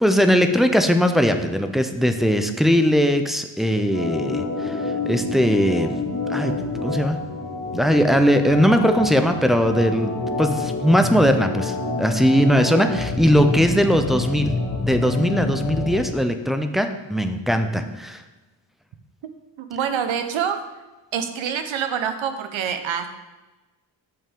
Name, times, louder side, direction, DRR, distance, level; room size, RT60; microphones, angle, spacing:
voice 1, 0.0-6.0 6.3-6.5 6.8-7.2 7.7-10.1 10.4-14.5 14.8-18.2, equal, ahead, 6 dB, 0.3 m, -19 dB
Organ, 3.9-16.1, left 3 dB, 40° left, 1.1 m, -28 dB
voice 2, 19.6-20.6 21.1-23.1, right 8 dB, 85° right, 8 dB, 0.8 m, -26 dB
8.9 x 5.3 x 3.7 m, 1.1 s
wide cardioid pair, 135°, 45 cm